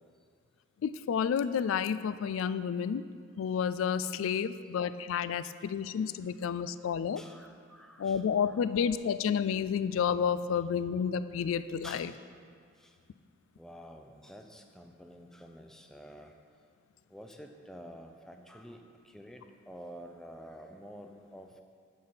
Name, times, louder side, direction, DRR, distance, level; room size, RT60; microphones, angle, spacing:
voice 1, 0.8-3.0 3.4-7.2 8.0-12.1, left 7 dB, 80° left, 14 dB, 0.3 m, -30 dB
voice 2, 7.2-8.6 11.8-12.1 12.8-13.0 13.6-16.3 17.1-21.6, equal, 5° left, 4 dB, 0.4 m, -49 dB
9.4 x 4.1 x 6.8 m, 2.1 s
head